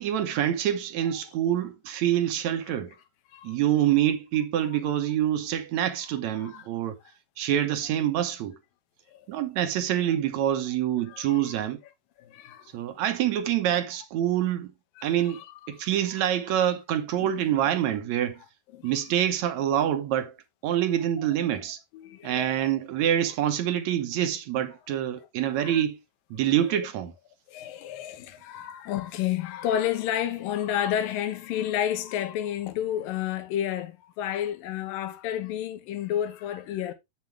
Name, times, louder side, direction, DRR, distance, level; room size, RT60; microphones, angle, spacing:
voice 1, 0.0-3.0 3.4-7.0 7.4-8.6 9.3-11.8 12.7-14.7 15.0-15.4 15.7-18.4 18.8-20.4 20.6-21.8 22.2-26.0 26.3-27.1, right 11 dB, 65° right, 2.0 m, -26 dB
voice 2, 11.1-11.4 12.2-12.7 15.0-15.4 17.2-17.3 18.7-19.0 21.9-22.7 25.6-25.8 27.5-36.9, left 11 dB, 85° left, 2.8 m, -31 dB
8.4 x 7.7 x 3.4 m
omnidirectional pair, 3.9 m